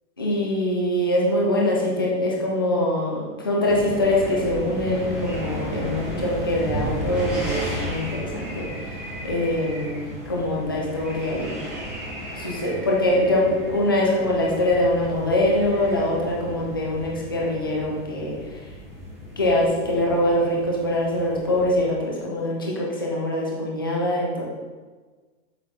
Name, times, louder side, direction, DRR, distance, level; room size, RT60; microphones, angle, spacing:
voice 1, 0.2-11.5 12.3-18.6 19.4-24.4, left 1 dB, 20° left, -3 dB, 0.3 m, -23 dB
sound 1, 3.7-21.8, equal, ahead, 0.7 m, -34 dB
7.6 x 6.2 x 3.3 m, 1.4 s
supercardioid pair, 180°, 40 cm